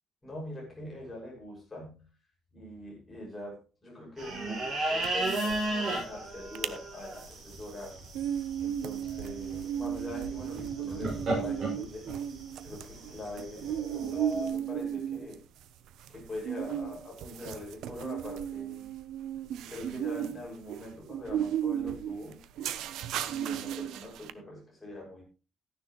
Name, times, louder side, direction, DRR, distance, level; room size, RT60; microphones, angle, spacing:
voice 1, 0.2-2.1 2.5-8.0 8.6-12.1 12.6-15.4 16.1-18.9 19.7-22.5 23.2-25.2, left 1 dB, 10° left, -3 dB, 6.5 m, -43 dB
sound 1, 4.2-14.5, right 2 dB, 40° right, 6.7 m, -35 dB
sound 2, 5.0-5.7 5.9-6.0 6.4-6.8 7.2-24.3, right 10 dB, 80° right, 0.9 m, -35 dB
14.5 x 10.0 x 3.2 m, 0.33 s
cardioid pair, 170°, 0 cm